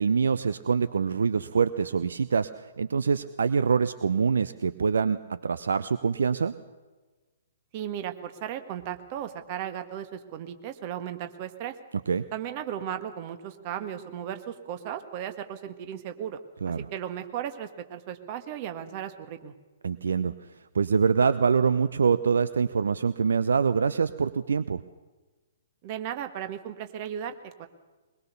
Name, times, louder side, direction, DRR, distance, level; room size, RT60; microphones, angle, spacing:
voice 1, 0.0-6.5 11.9-12.2 16.6-16.9 19.8-24.8, right 5 dB, 60° right, 13 dB, 0.7 m, -25 dB
voice 2, 7.7-11.8 12.3-16.4 16.9-19.5 25.8-27.7, right 10 dB, 35° right, 8 dB, 1.8 m, -36 dB
22.5 x 21.5 x 6.8 m, 1.2 s
figure-of-eight pair, 120°, 0 cm